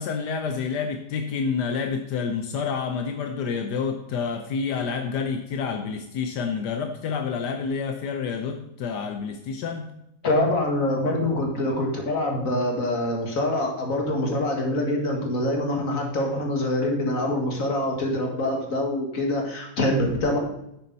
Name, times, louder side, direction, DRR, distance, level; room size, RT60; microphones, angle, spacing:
voice 1, 0.0-9.9, left 5 dB, 85° left, 6 dB, 1.4 m, -28 dB
voice 2, 10.2-20.4, left 1 dB, 50° left, 1 dB, 2.4 m, -25 dB
10.5 x 8.6 x 4.1 m, 0.80 s
omnidirectional pair, 1.8 m